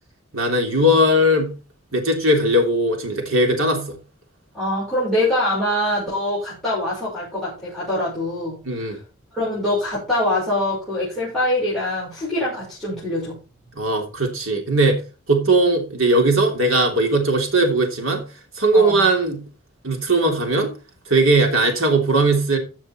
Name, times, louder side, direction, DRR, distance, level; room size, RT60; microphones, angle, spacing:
voice 1, 0.3-1.5 1.9-4.0 8.7-9.0 13.8-15.0 15.3-18.2 18.6-19.4 19.8-20.7 21.1-22.6, right 1 dB, 80° right, 3.3 m, -19 dB
voice 2, 4.5-8.9 9.3-13.4 18.7-19.0, left 1 dB, ahead, 6.2 m, -24 dB
15.0 x 6.5 x 4.4 m
head